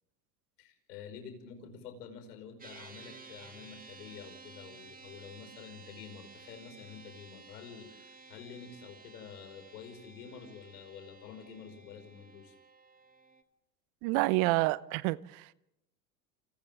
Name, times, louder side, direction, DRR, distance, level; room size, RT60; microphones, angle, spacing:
voice 1, 0.6-12.6, left 7 dB, 75° left, 5.5 m, -48 dB
sound 1, 2.6-13.4, right 4 dB, 15° right, 1.8 m, -54 dB
voice 2, 14.0-15.5, right 20 dB, 55° right, 0.9 m, -28 dB
29.0 x 29.0 x 3.6 m
hypercardioid pair, 85°, 48 cm